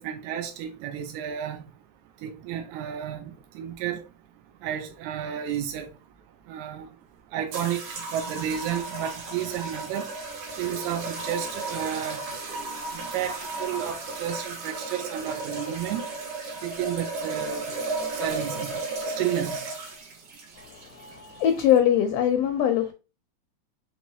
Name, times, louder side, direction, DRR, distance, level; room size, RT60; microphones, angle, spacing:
voice 1, 0.0-1.6 2.2-4.0 4.6-5.9 6.5-6.9 7.3-10.1 10.6-12.2 12.9-16.1 16.6-17.6 18.2-18.7 19.2-19.7, right 10 dB, 90° right, 2.0 m, -31 dB
sound 1, 7.5-21.8, right 3 dB, 70° right, 2.5 m, -34 dB
voice 2, 20.6-22.9, left 10 dB, 80° left, 1.4 m, -23 dB
5.5 x 3.0 x 2.7 m
omnidirectional pair, 3.3 m